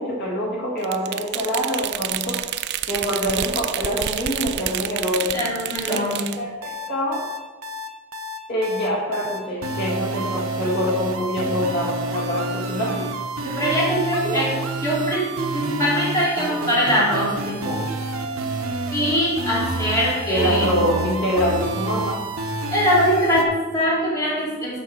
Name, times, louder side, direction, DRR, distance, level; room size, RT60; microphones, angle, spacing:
voice 1, 0.0-2.4 2.9-5.4 5.9-6.0 6.4-7.3 8.5-13.1 14.2-14.4 20.3-22.2, equal, 50° left, -6 dB, 2.0 m, -25 dB
sound 1, 0.8-6.4, right 12 dB, 50° right, 0.3 m, -28 dB
voice 2, 5.1-6.3 13.4-14.5 14.8-17.8 18.9-20.8 22.7-24.8, equal, 15° left, -8 dB, 2.7 m, -22 dB
sound 2, 6.6-23.4, right 2 dB, 70° right, 0.8 m, -29 dB
6.7 x 5.1 x 6.3 m, 1.3 s
head